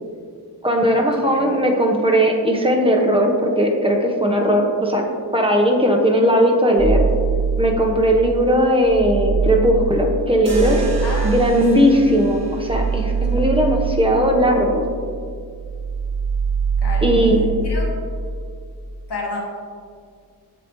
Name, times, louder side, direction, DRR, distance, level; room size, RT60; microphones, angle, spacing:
voice 1, 0.6-5.0 5.3-7.0 7.6-10.8 11.2-14.9 17.0-17.5, equal, 15° right, 0 dB, 1.1 m, -17 dB
sound 1, 6.8-8.2 8.6-15.1 15.5-17.7, right 5 dB, 65° right, 2.2 m, -24 dB
sound 2, 10.5-14.5, right 1 dB, 40° right, 1.6 m, -33 dB
voice 2, 11.0-11.5 13.4-13.5 16.8-17.1 17.6-17.9 19.1-19.4, left 2 dB, 90° left, -1 dB, 1.8 m, -30 dB
15.0 x 5.0 x 3.2 m, 2.1 s
wide cardioid pair, 85°, 39 cm